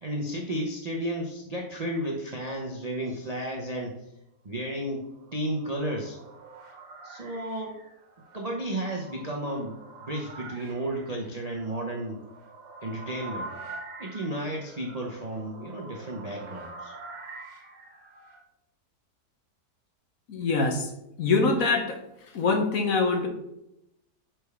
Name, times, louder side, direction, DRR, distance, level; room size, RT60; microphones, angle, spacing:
voice 1, 0.0-4.0 4.4-6.2 7.0-7.8 8.3-9.8 10.1-12.2 12.8-13.5 14.0-16.9, right 1 dB, 40° right, 0 dB, 0.5 m, -33 dB
sound 1, 5.0-18.4, right 3 dB, 75° right, 1.6 m, -45 dB
voice 2, 20.3-20.9 21.2-22.0 22.3-23.3, left 3 dB, 60° left, 4 dB, 1.2 m, -24 dB
5.2 x 4.4 x 4.6 m, 0.85 s
omnidirectional pair, 1.8 m